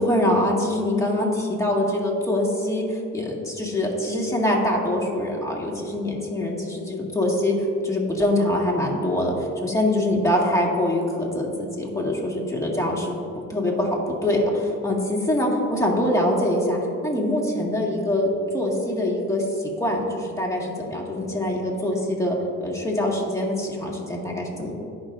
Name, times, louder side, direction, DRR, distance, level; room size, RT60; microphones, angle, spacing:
voice 1, 0.0-7.6 7.8-13.2 13.5-16.8 17.0-24.7, left 1 dB, 10° left, -3 dB, 1.9 m, -24 dB
17.5 x 5.9 x 2.6 m, 2.6 s
cardioid pair, 90°, 30 cm